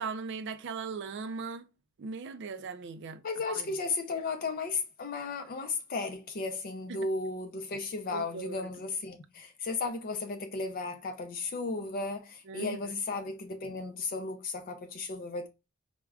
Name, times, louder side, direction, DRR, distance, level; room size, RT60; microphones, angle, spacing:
voice 1, 0.0-1.7 2.0-3.2 3.5-3.7 6.9-7.1 8.1-8.7 12.5-13.0, right 4 dB, 60° right, 0.4 m, -39 dB
voice 2, 3.2-15.5, left 3 dB, 45° left, 0.4 m, -35 dB
4.7 x 2.1 x 2.3 m
head